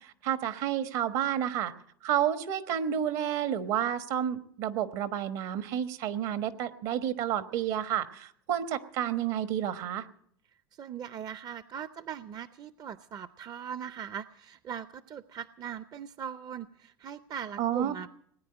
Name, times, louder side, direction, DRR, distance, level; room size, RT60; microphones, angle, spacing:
voice 1, 0.0-1.7 2.0-10.1 17.6-17.9, right 10 dB, 60° right, 11 dB, 1.3 m, -30 dB
voice 2, 10.7-18.1, right 8 dB, 35° right, 14 dB, 0.5 m, -40 dB
19.5 x 9.6 x 7.9 m, 0.65 s
hypercardioid pair, 95°, 11 cm